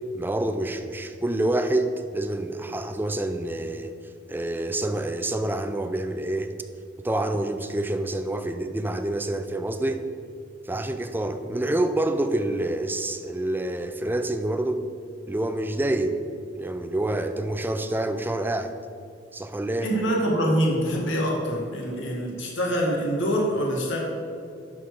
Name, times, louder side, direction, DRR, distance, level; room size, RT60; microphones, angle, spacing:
voice 1, 0.1-3.9 4.3-6.5 7.0-10.1 10.7-14.8 15.3-16.2 16.5-18.7 19.3-20.0, right 1 dB, 10° right, 8 dB, 0.4 m, -27 dB
voice 2, 19.8-24.0, equal, 90° left, -2 dB, 1.9 m, -25 dB
11.5 x 4.5 x 4.8 m, 2.5 s
head